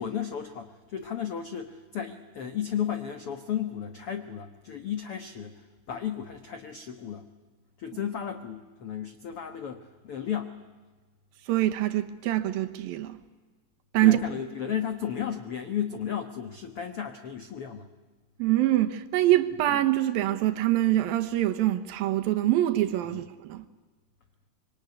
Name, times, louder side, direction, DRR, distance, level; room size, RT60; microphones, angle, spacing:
voice 1, 0.0-7.3 7.8-10.6 14.0-17.9 23.1-23.2, left 9 dB, 75° left, 1.3 m, -34 dB
voice 2, 11.5-13.2 13.9-14.2 18.4-23.7, right 14 dB, 75° right, 2.7 m, -24 dB
26.0 x 24.0 x 9.6 m
omnidirectional pair, 4.6 m